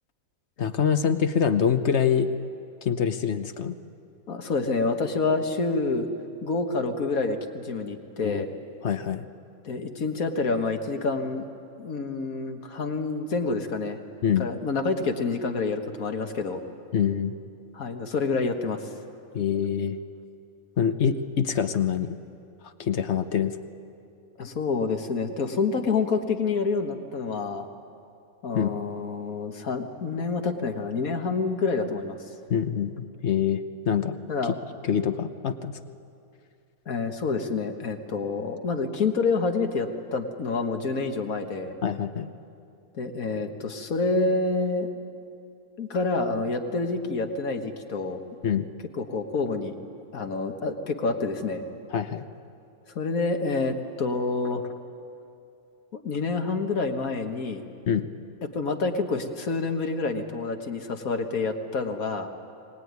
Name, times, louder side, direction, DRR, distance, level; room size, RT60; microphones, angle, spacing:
voice 1, 0.6-2.3 2.8-3.7 8.2-8.4 8.8-9.2 14.2-14.5 16.9-17.4 19.3-20.0 20.8-22.2 22.8-23.6 28.5-28.7 32.5-34.1 34.4-34.5 34.8-35.8 41.8-42.3 48.4-48.7 51.9-52.2 57.9-58.1, left 8 dB, 55° left, 10 dB, 1.1 m, -25 dB
voice 2, 4.3-6.1 6.4-8.5 9.6-11.5 11.8-14.0 14.4-16.6 17.7-19.1 24.4-27.7 28.4-32.2 34.3-34.5 36.9-41.7 43.0-44.9 45.8-48.2 49.0-49.8 50.1-51.6 53.0-54.7 55.9-57.6 58.5-62.3, left 4 dB, 70° left, 5 dB, 1.9 m, -28 dB
23.5 x 19.0 x 9.5 m, 2.6 s
omnidirectional pair, 1.5 m